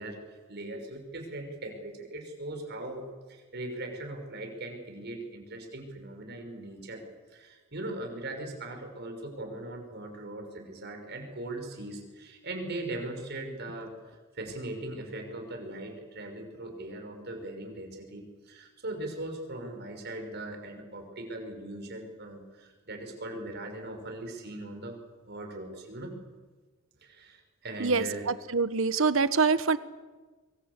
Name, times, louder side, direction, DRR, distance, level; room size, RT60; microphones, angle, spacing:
voice 1, 0.0-7.0 7.3-25.0 25.2-26.2 27.0-28.3, right 1 dB, 55° right, 4 dB, 6.0 m, -40 dB
voice 2, 28.5-29.8, right 4 dB, 80° right, 14 dB, 1.2 m, -24 dB
24.5 x 23.5 x 8.3 m, 1.3 s
head